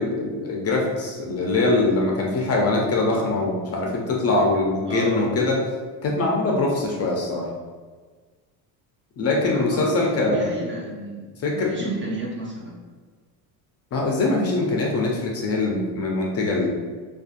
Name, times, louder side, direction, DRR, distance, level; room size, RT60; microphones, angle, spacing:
voice 1, 0.0-5.6 6.0-7.5 9.2-10.5 11.4-11.9 13.9-16.7, left 2 dB, 35° left, -1 dB, 0.4 m, -23 dB
voice 2, 4.9-5.3 9.5-12.7, right 2 dB, 25° right, -3 dB, 0.5 m, -32 dB
2.4 x 2.4 x 2.4 m, 1.4 s
supercardioid pair, 95°, 44 cm